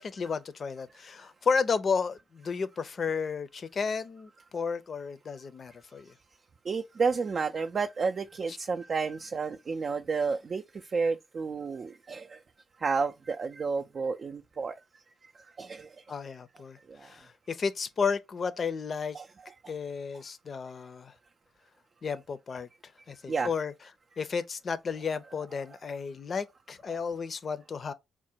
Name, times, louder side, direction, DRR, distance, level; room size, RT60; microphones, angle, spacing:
voice 1, 0.0-6.1 8.5-8.6 16.1-19.2 19.7-21.1 22.0-22.7 23.1-23.7 24.2-27.9, left 5 dB, 50° left, 0.5 m, -32 dB
voice 2, 6.6-12.4 12.8-14.8 15.4-16.0 16.9-17.1 19.1-19.3 19.6-19.7 23.3-23.5, right 4 dB, 50° right, 0.3 m, -31 dB
3.7 x 2.1 x 4.2 m
hypercardioid pair, 45°, 0 cm